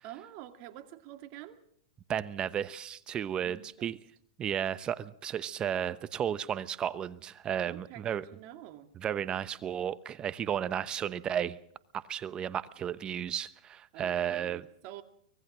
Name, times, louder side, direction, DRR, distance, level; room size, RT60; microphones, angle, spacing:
voice 1, 0.0-1.6 3.3-3.9 7.7-8.9 13.9-15.0, right 13 dB, 45° right, 8 dB, 2.2 m, -48 dB
voice 2, 2.1-4.0 4.4-8.2 9.0-11.6 11.9-14.6, right 9 dB, 25° right, 16 dB, 0.9 m, -33 dB
24.0 x 20.0 x 6.2 m, 0.66 s
hypercardioid pair, 120°, 3 cm